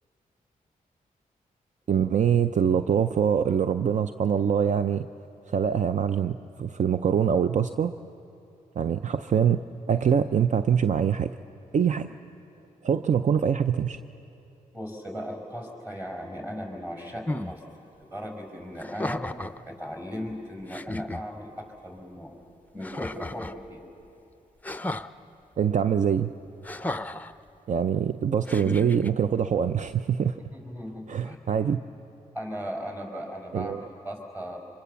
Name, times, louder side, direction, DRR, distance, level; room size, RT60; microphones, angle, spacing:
voice 1, 1.9-5.1 5.5-7.9 8.8-9.6 9.9-11.3 11.7-12.1 12.8-14.0 25.6-26.3 27.7-30.4 31.1-31.8 33.5-33.8, right 8 dB, 55° right, 11 dB, 0.5 m, -24 dB
voice 2, 14.7-17.6 18.0-19.3 19.6-22.3 22.7-23.9 30.5-31.4 32.3-34.6, equal, 15° right, 3 dB, 5.5 m, -37 dB
sound 1, 17.3-17.5 18.8-19.6 20.3-20.4 20.7-21.2 22.8-23.6 24.6-25.1 26.6-27.3 28.5-29.1, left 1 dB, 10° left, 0.6 m, -34 dB
25.0 x 23.0 x 7.0 m, 2.8 s
cardioid pair, 60°, 15 cm